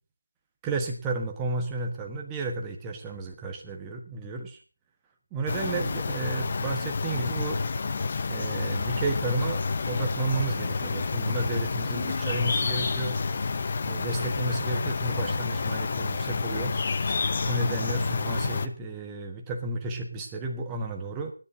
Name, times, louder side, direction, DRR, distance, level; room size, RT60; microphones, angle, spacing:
voice 1, 0.6-4.6 5.3-7.6 8.3-13.2 13.8-16.7 17.4-21.3, right 2 dB, 10° right, 2 dB, 1.2 m, -32 dB
sound 1, 5.5-18.7, left 4 dB, 35° left, 0.7 m, -29 dB
27.0 x 10.0 x 2.7 m, 0.34 s
figure-of-eight pair, 170°, 0 cm